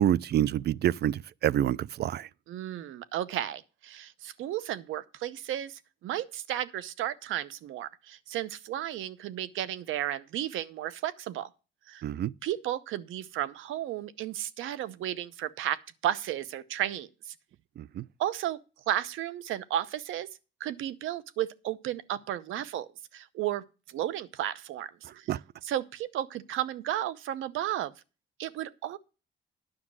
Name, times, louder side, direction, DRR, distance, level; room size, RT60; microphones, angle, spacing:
voice 1, 0.0-2.3 12.0-12.3 17.8-18.0 25.3-25.4, right 11 dB, 55° right, 0.4 m, -27 dB
voice 2, 2.5-11.5 11.9-12.0 12.4-17.3 18.2-18.6 18.9-20.3 20.6-25.3 25.6-27.9 28.4-29.0, right 12 dB, 85° right, 0.8 m, -33 dB
9.9 x 6.0 x 6.1 m
cardioid pair, 90°, 20 cm